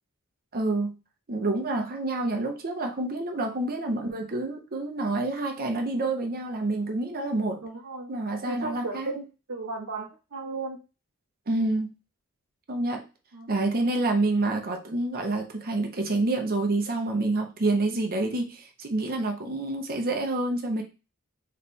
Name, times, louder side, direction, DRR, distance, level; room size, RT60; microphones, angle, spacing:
voice 1, 0.5-0.9 1.3-7.6 8.1-9.1 11.5-11.9 12.7-13.0 13.5-20.8, right 2 dB, 45° right, 3 dB, 0.9 m, -28 dB
voice 2, 7.6-8.1 8.4-10.8 13.3-13.5, right 3 dB, 75° right, 0 dB, 0.9 m, -35 dB
3.3 x 3.2 x 4.2 m, 0.30 s
head